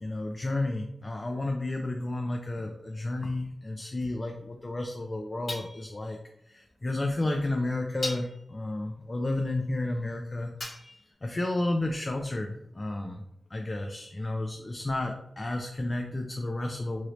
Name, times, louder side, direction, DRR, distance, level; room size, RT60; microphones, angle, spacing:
voice 1, 0.0-6.2 6.5-10.9 11.2-13.2 13.5-17.1, left 2 dB, 35° left, 2 dB, 0.4 m, -32 dB
sound 1, 2.9-3.1 5.5-6.1 7.1-7.2 8.0-8.6 10.6-11.1, left 1 dB, 70° left, 1.3 m, -38 dB
3.1 x 2.6 x 2.9 m, 0.77 s
wide cardioid pair, 85°, 0 cm